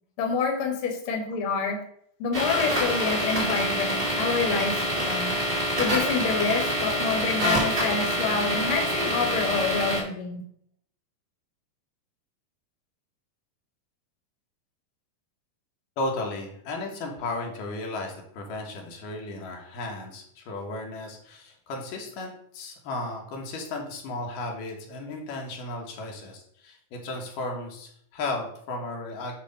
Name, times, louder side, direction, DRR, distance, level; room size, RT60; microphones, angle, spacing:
voice 1, 0.2-1.8 2.2-5.3 5.8-10.4, left 5 dB, 50° left, 1 dB, 1.9 m, -27 dB
sound 1, 2.3-10.0, equal, 25° right, 1.5 m, -26 dB
voice 2, 16.0-29.3, left 2 dB, 80° left, 1 dB, 2.8 m, -34 dB
8.9 x 3.2 x 5.1 m, 0.67 s
omnidirectional pair, 3.7 m